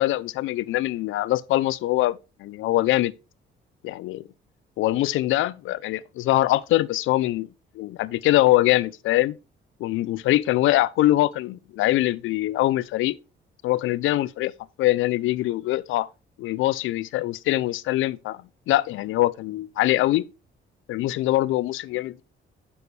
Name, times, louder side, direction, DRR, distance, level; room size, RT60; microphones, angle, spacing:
voice 1, 0.0-3.1 3.8-4.2 4.8-7.5 7.8-9.4 9.8-13.2 13.6-14.5 14.8-16.1 16.4-20.2 20.9-22.2, left 16 dB, 85° left, 0.5 m, -23 dB
9.2 x 7.1 x 3.2 m
cardioid pair, 90°, 20 cm